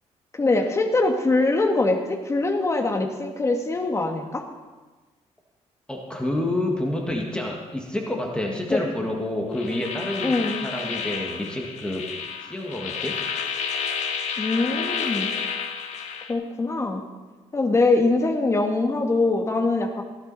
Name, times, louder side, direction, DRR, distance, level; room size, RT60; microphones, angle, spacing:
voice 1, 0.3-4.4 8.7-8.8 10.2-10.7 14.4-15.3 16.3-17.0 17.5-20.0, left 2 dB, 25° left, 3 dB, 1.8 m, -23 dB
voice 2, 5.9-12.1 12.4-13.2, left 1 dB, 10° left, 0 dB, 1.8 m, -28 dB
sound 1, 9.5-16.3, left 6 dB, 70° left, 1.2 m, -30 dB
16.5 x 12.0 x 4.2 m, 1.3 s
cardioid pair, 120°, 12 cm